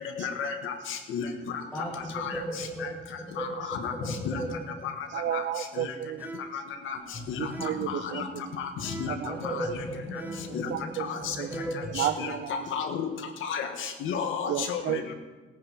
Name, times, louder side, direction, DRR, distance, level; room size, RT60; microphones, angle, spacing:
voice 1, 0.2-0.7 1.1-1.2 2.2-2.3 3.4-3.9 4.3-4.4 5.3-5.4 6.9-7.0 7.3-7.5 7.9-8.2 8.6-8.7 9.0-9.1 10.5-10.6 12.0-13.1 13.4-13.7 14.0-15.0, left 7 dB, 85° left, 7 dB, 1.6 m, -32 dB
voice 2, 1.7-3.0 3.3-3.6 3.9-4.7 9.3-12.1, right 1 dB, 5° left, -4 dB, 2.7 m, -36 dB
voice 3, 5.1-6.6 7.4-8.7 9.0-9.7 10.7-11.5 11.9-12.8 14.5-15.1, right 10 dB, 65° right, 10 dB, 0.6 m, -33 dB
sound 1, 6.2-6.7 7.5-8.0 8.8-9.3 10.1-10.6 11.4-12.0, right 2 dB, 10° right, 1.7 m, -42 dB
sound 2, 6.9-8.4 9.6-11.9, left 2 dB, 30° left, 4.1 m, -42 dB
18.0 x 9.9 x 4.6 m, 1.3 s
cardioid pair, 90°, 20 cm